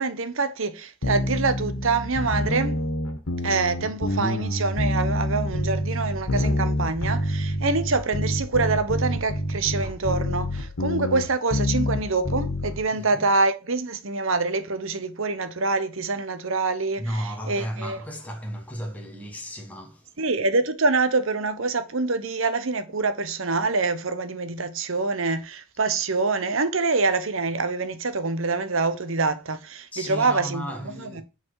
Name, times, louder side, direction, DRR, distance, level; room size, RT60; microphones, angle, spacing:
voice 1, 0.0-2.8 3.4-18.0 20.2-31.2, right 3 dB, 65° right, 0.9 m, -25 dB
sound 1, 1.0-12.8, left 1 dB, 85° left, 1.5 m, -27 dB
voice 2, 12.9-13.3 17.0-20.1 29.9-31.2, equal, 5° left, 1.2 m, -34 dB
8.8 x 4.2 x 4.7 m
head